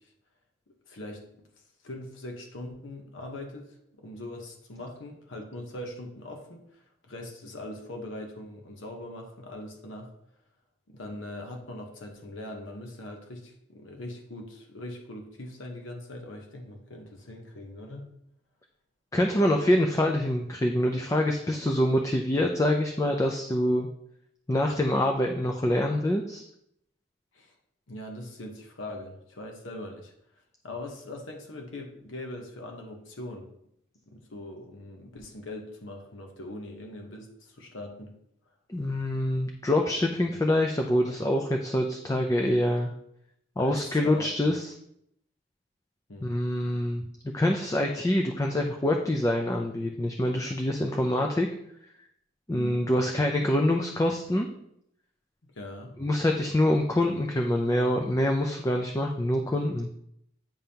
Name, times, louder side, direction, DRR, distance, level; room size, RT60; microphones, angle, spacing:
voice 1, 0.9-1.4 1.8-10.1 10.9-18.1 27.3-27.5 27.9-30.1 30.6-33.5 34.1-38.1 43.6-44.6 46.1-46.3 52.5-52.9 55.4-56.0, left 1 dB, 85° left, 2 dB, 1.1 m, -41 dB
voice 2, 19.1-23.9 24.5-26.4 38.7-42.9 43.6-44.7 46.2-47.1 47.3-51.5 52.5-54.5 56.0-59.9, left 1 dB, 15° left, 2 dB, 0.4 m, -25 dB
9.0 x 5.2 x 2.9 m, 0.75 s
head